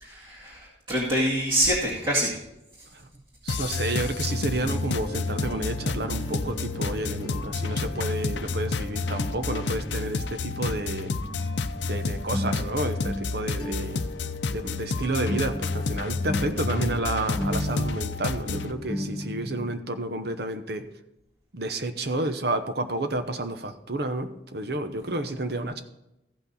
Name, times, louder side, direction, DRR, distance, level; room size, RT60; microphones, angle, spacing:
voice 1, 0.0-2.4, equal, 25° right, -7 dB, 2.1 m, -25 dB
voice 2, 3.4-11.1 11.8-14.0 14.5-20.9 21.5-25.8, right 2 dB, 60° right, 8 dB, 0.9 m, -30 dB
sound 1, 3.5-18.7, left 4 dB, 75° left, 0.6 m, -30 dB
sound 2, 4.3-19.8, equal, 20° left, 1.6 m, -35 dB
15.0 x 5.9 x 4.1 m, 0.87 s
head